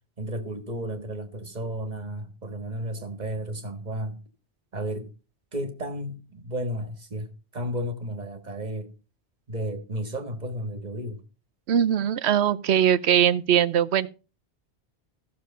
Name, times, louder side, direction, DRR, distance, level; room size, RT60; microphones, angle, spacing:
voice 1, 0.2-4.2 4.7-5.1 5.5-7.3 7.5-8.9 9.5-11.2, equal, 40° right, 1.8 m, -33 dB
voice 2, 11.7-14.1, right 9 dB, 75° right, 1.0 m, -21 dB
14.0 x 6.7 x 5.4 m
omnidirectional pair, 1.1 m